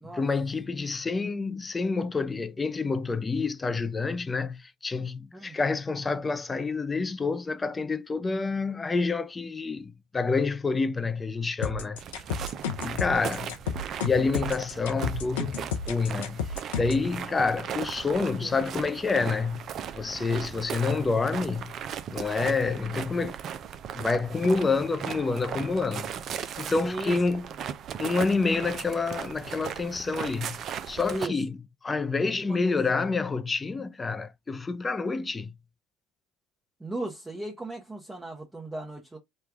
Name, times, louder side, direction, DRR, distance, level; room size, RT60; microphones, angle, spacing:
voice 1, 0.1-12.0 12.8-13.6 14.0-15.6 15.9-19.7 19.9-21.7 22.1-23.4 23.9-27.4 28.0-31.5 31.8-35.5, left 4 dB, 25° left, 0.5 m, -28 dB
sound 1, 11.6-17.1, left 6 dB, 80° left, 0.6 m, -32 dB
sound 2, 12.0-31.3, right 8 dB, 50° right, 0.4 m, -37 dB
voice 2, 18.1-18.5 26.8-27.4 31.1-31.4 32.5-33.0 36.8-39.2, right 1 dB, 15° right, 0.9 m, -37 dB
3.2 x 2.3 x 3.4 m
hypercardioid pair, 65°, 0 cm